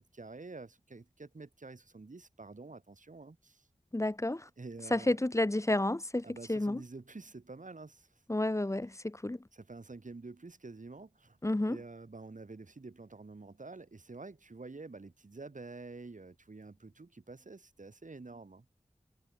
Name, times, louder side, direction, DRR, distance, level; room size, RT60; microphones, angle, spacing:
voice 1, 0.0-3.7 4.6-5.2 6.2-8.1 9.5-11.4 11.6-18.6, right 3 dB, 75° right, 7.6 m, -48 dB
voice 2, 3.9-4.5 4.9-6.8 8.3-9.5 11.4-11.8, left 1 dB, 20° left, 0.9 m, -31 dB
wide cardioid pair, 60°, 13 cm